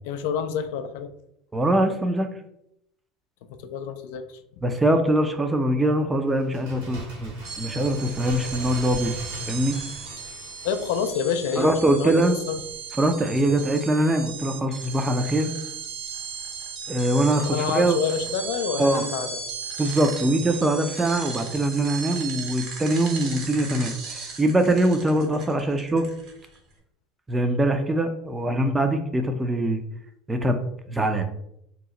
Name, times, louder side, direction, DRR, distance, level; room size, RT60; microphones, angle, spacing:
voice 1, 0.0-1.1 3.5-4.4 10.6-12.6 17.5-19.4, left 7 dB, 75° left, 9 dB, 0.3 m, -28 dB
voice 2, 1.5-2.3 4.6-9.1 9.5-9.8 11.6-12.4 13.0-15.5 16.9-18.0 18.8-19.1 19.8-26.1 27.3-29.8 30.3-30.6 30.9-31.3, right 1 dB, 15° right, 7 dB, 0.4 m, -23 dB
Bird, 6.4-11.9 12.2-12.3, right 1 dB, 75° right, 1.2 m, -40 dB
sound 1, 7.4-26.6, right 5 dB, 60° right, 0.9 m, -36 dB
2.9 x 2.0 x 3.7 m, 0.76 s
supercardioid pair, 95°, 0 cm